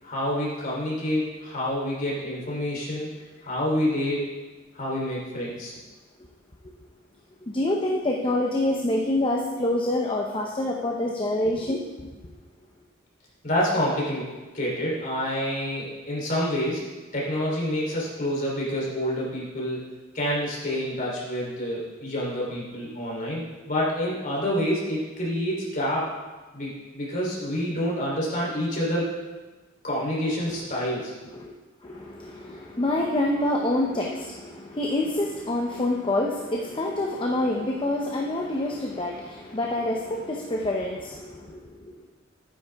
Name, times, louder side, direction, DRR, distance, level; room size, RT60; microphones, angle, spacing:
voice 1, 0.0-3.1 3.4-4.3 4.7-5.7 13.4-16.8 17.1-19.8 20.1-26.1 26.5-29.1 29.8-31.1, equal, 40° left, -4 dB, 3.4 m, -28 dB
voice 2, 7.5-11.8 31.3-31.5 31.8-41.9, left 1 dB, 25° left, -1 dB, 0.8 m, -27 dB
11.0 x 9.5 x 3.5 m, 1.2 s
head